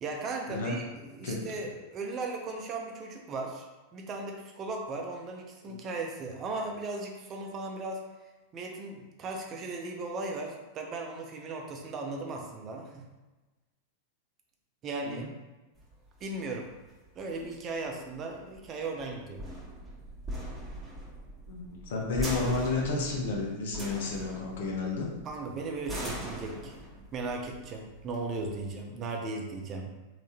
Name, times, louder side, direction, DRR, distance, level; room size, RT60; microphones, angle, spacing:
voice 1, 0.0-3.7 3.9-8.0 8.5-13.0 14.8-15.2 16.2-16.7 17.1-19.4 25.2-26.7 27.1-29.9, right 3 dB, 35° right, 1 dB, 0.6 m, -37 dB
voice 2, 1.2-1.6 5.7-5.8 15.0-15.3 21.5-25.1, left 3 dB, 70° left, -1 dB, 0.9 m, -32 dB
sound 1, 15.8-28.8, right 1 dB, 10° right, 1.3 m, -41 dB
3.4 x 2.9 x 2.8 m, 1.1 s
hypercardioid pair, 100°, 0 cm